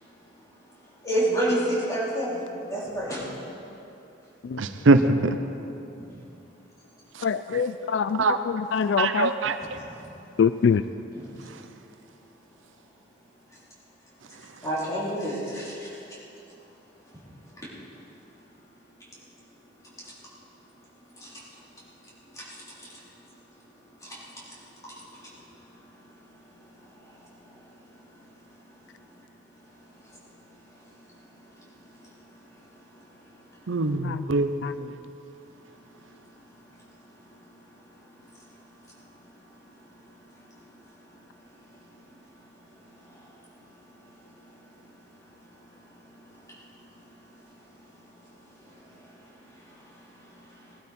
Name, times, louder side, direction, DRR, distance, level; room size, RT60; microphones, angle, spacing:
voice 1, 1.0-3.3 5.9-6.0 9.9-10.0 11.1-11.3 14.6-16.0 20.0-20.1 21.2-21.4 22.3-22.6 24.0-24.6 24.9-25.3 25.7-25.8 26.8-27.9 29.0-29.1 30.0-30.4 30.7-31.1 31.4-31.7 32.0-32.3 32.6-33.2 35.6-36.0 37.2-37.3 37.9-38.4 38.8-39.3 39.6-40.2 40.5-40.9 41.6-42.0 42.6-43.3 44.0-44.6 44.8-45.2 45.6-45.7 46.0-47.1 47.5-47.6 48.6-50.8, right 1 dB, 15° left, -8 dB, 3.6 m, -34 dB
voice 2, 4.6-5.3 7.5-7.9 8.2-8.4 9.0-9.6 33.7-34.5, right 3 dB, 85° right, 10 dB, 0.7 m, -22 dB
voice 3, 7.2-9.3 10.4-10.8 34.0-34.2 34.6-34.7, left 6 dB, 70° left, 13 dB, 0.3 m, -24 dB
19.0 x 12.0 x 4.3 m, 2.9 s
head